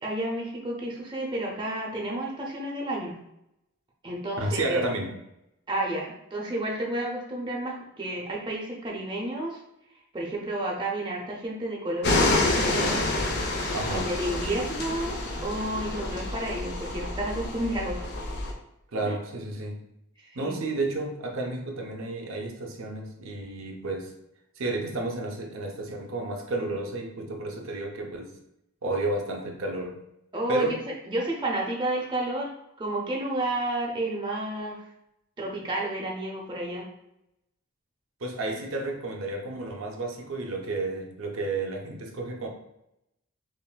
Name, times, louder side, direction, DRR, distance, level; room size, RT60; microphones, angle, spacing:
voice 1, 0.0-3.2 4.0-4.8 5.7-9.6 10.1-13.0 13.9-18.1 19.0-19.2 20.2-20.6 30.3-30.8 31.1-34.8 35.4-36.9, right 1 dB, 20° right, -2 dB, 0.5 m, -31 dB
voice 2, 4.4-5.2 13.7-14.1 18.9-19.8 20.3-24.1 24.6-28.3 28.8-30.0 30.5-30.8 38.2-42.5, right 2 dB, 65° right, 2 dB, 0.6 m, -31 dB
sound 1, 12.0-18.5, left 2 dB, 50° left, 0.6 m, -28 dB
5.6 x 2.5 x 2.2 m, 0.83 s
head